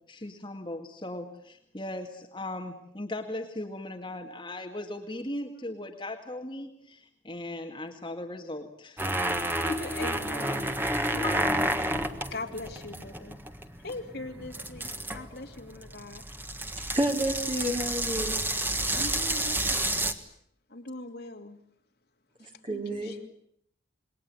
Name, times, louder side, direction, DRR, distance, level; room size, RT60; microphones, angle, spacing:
voice 1, 0.1-9.1 11.1-11.6, left 1 dB, 25° left, 2.1 m, -38 dB
sound 1, 9.0-20.1, right 1 dB, 10° right, 1.6 m, -30 dB
voice 2, 9.6-10.7 11.3-12.0 12.3-13.4 13.8-16.2 18.9-20.0 20.7-21.6 22.4-23.3, left 2 dB, 55° left, 2.8 m, -41 dB
voice 3, 16.9-18.4 22.4-23.2, right 1 dB, 25° right, 3.8 m, -30 dB
27.5 x 21.5 x 9.2 m
head